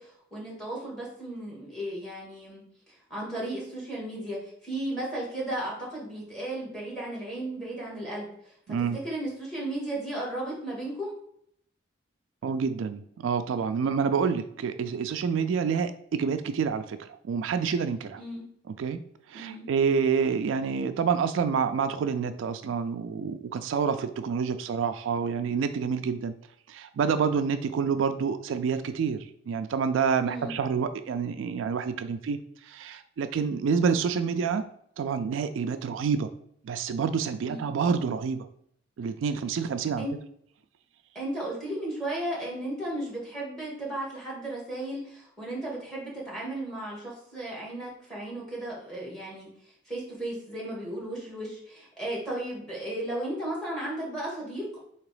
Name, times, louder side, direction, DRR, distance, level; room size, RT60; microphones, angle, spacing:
voice 1, 0.0-8.5 8.9-11.1 18.1-18.4 19.3-19.7 30.3-30.5 37.4-37.7 40.0-40.1 41.2-49.5 49.9-54.8, right 1 dB, 5° left, -5 dB, 1.8 m, -35 dB
voice 2, 12.4-18.2 18.8-19.0 19.3-26.3 26.7-32.4 32.7-34.6 35.0-36.3 36.6-38.5 39.0-40.0, right 6 dB, 80° right, 10 dB, 0.3 m, -28 dB
3.8 x 2.9 x 4.8 m, 0.68 s
head